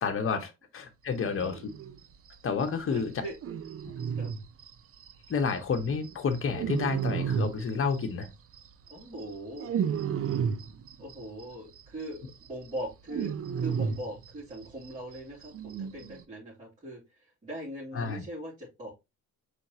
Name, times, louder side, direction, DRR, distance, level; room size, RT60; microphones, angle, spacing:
voice 1, 0.0-1.6 2.4-3.1 5.3-8.3 17.9-18.2, left 5 dB, 45° left, 1.1 m, -30 dB
sound 1, 1.4-2.0 2.3-2.4 2.6-2.7 3.0-3.1 3.3-5.8 6.0-8.3 8.5-11.4 11.8-11.9 12.2-14.9 15.1-15.2 15.4-16.2, right 7 dB, 50° right, 0.6 m, -32 dB
voice 2, 2.8-3.4 4.1-4.3 8.9-9.7 11.0-18.9, right 1 dB, 25° right, 2.8 m, -40 dB
4.5 x 3.5 x 2.8 m
cardioid pair, 90°, 30 cm